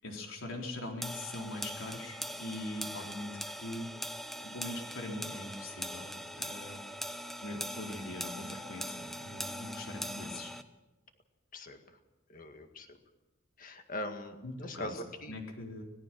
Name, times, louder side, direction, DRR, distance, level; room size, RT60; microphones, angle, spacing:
voice 1, 0.0-3.9 4.4-6.8 7.4-10.5 14.4-15.0 15.3-15.8, left 1 dB, 80° left, 1 dB, 4.0 m, -42 dB
sound 1, 1.0-10.6, equal, ahead, 0.8 m, -41 dB
voice 2, 11.5-12.0 12.3-13.0 13.6-15.4, left 1 dB, 40° left, 6 dB, 2.0 m, -42 dB
25.0 x 18.0 x 6.2 m, 1.0 s
head